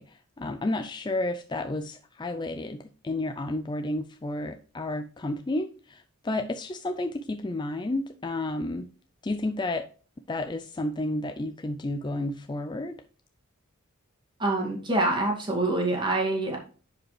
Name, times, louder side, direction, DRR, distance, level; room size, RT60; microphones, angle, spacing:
voice 1, 0.0-8.9 9.2-9.9 10.3-13.0, left 2 dB, 20° left, 8 dB, 0.4 m, -31 dB
voice 2, 14.4-16.6, right 2 dB, 20° right, 0 dB, 2.2 m, -26 dB
10.5 x 5.1 x 3.2 m, 0.38 s
head